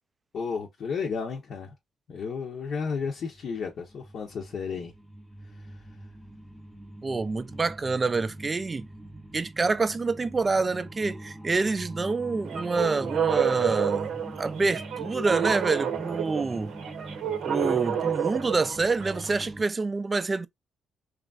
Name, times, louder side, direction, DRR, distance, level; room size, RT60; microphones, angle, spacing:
voice 1, 0.3-1.7 2.1-4.9 5.4-5.9, left 5 dB, 60° left, 0.7 m, -33 dB
sound 1, 3.0-19.6, right 1 dB, 5° right, 0.7 m, -43 dB
voice 2, 7.0-8.9 9.3-16.7 17.4-20.5, right 3 dB, 30° right, 0.3 m, -27 dB
sound 2, 12.5-19.3, right 8 dB, 80° right, 0.7 m, -29 dB
3.1 x 2.4 x 2.3 m
cardioid pair, 90°, 0 cm